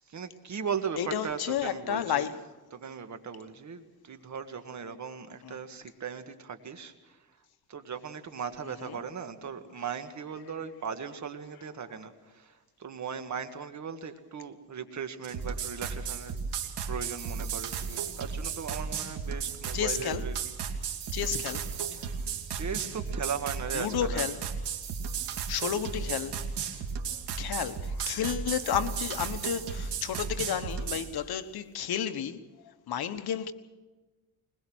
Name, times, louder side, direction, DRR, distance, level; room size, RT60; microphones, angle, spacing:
voice 1, 0.1-2.3 2.7-7.2 7.7-16.4 16.9-20.4 22.0-22.1 22.5-24.3, right 6 dB, 45° right, 1.8 m, -38 dB
voice 2, 1.0-2.4 5.4-5.6 8.6-9.0 19.7-20.2 21.1-21.7 23.7-24.4 25.5-26.5 27.4-33.5, left 9 dB, 65° left, 1.3 m, -32 dB
sound 1, 15.2-31.1, right 6 dB, 75° right, 2.7 m, -35 dB
21.5 x 21.5 x 6.3 m
cardioid pair, 120°, 40 cm